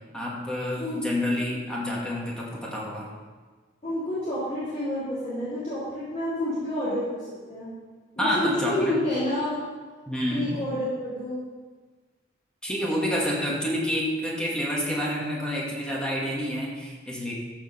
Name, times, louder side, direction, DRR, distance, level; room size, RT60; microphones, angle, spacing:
voice 1, 0.1-3.1 8.2-9.0 10.1-10.6 12.6-17.3, equal, 5° left, -5 dB, 1.9 m, -28 dB
voice 2, 0.7-1.0 3.8-7.2 7.5-7.7 8.2-9.6 10.3-11.4, left 1 dB, 40° left, -12 dB, 3.4 m, -29 dB
14.0 x 5.1 x 5.7 m, 1.4 s
head